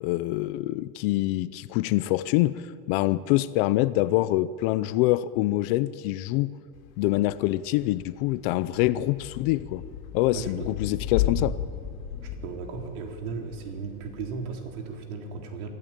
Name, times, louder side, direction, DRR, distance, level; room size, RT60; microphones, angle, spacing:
voice 1, 0.0-6.5 7.0-9.8 10.1-11.6, left 16 dB, 45° left, 16 dB, 0.5 m, -25 dB
Thunder / Rain, 6.7-15.0, left 9 dB, 80° left, 3.2 m, -35 dB
voice 2, 10.3-10.7 12.2-15.7, right 5 dB, 70° right, 3 dB, 3.8 m, -36 dB
24.5 x 14.5 x 9.0 m, 2.4 s
supercardioid pair, 165°, 45 cm